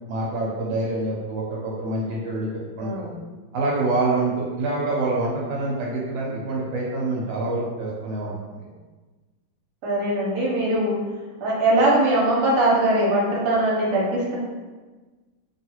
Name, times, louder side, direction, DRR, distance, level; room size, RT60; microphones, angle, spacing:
voice 1, 0.1-2.9 3.5-8.3, right 2 dB, 80° right, -4 dB, 1.3 m, -26 dB
voice 2, 2.8-3.1 9.8-11.0 11.4-14.4, right 1 dB, 65° right, -5 dB, 1.3 m, -21 dB
3.3 x 2.3 x 2.9 m, 1.3 s
omnidirectional pair, 2.1 m